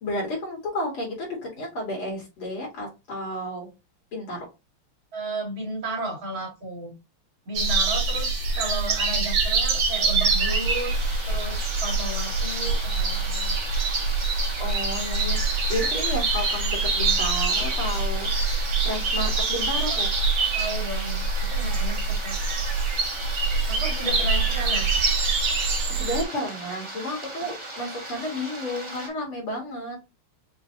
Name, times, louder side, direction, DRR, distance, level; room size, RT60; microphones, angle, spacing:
voice 1, 0.0-3.7 4.1-4.5 14.6-18.3 18.8-20.1 23.6-23.7 25.9-30.0, left 1 dB, 75° left, -2 dB, 3.1 m, -32 dB
voice 2, 5.1-6.9 7.5-13.5 20.5-22.4 23.6-24.9, right 2 dB, 65° right, -3 dB, 3.0 m, -34 dB
sound 1, 7.5-26.2, right 3 dB, 80° right, 2.7 m, -25 dB
sound 2, 9.8-29.1, right 2 dB, 15° right, 1.2 m, -38 dB
6.6 x 2.5 x 2.7 m, 0.26 s
omnidirectional pair, 2.4 m